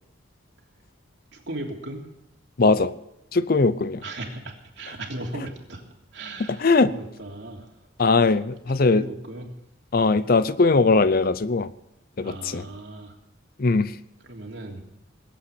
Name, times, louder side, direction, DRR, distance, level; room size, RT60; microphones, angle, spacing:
voice 1, 1.3-2.1 4.0-5.8 6.1-7.9 8.9-9.5 10.1-10.2 12.2-13.1 14.2-14.8, right 1 dB, 60° right, 0 dB, 3.2 m, -37 dB
voice 2, 2.6-2.9 3.3-4.0 6.5-6.9 8.0-9.0 9.9-11.7 12.2-12.7 13.6-14.0, left 3 dB, 50° left, 15 dB, 0.6 m, -20 dB
20.0 x 8.6 x 8.4 m, 0.85 s
head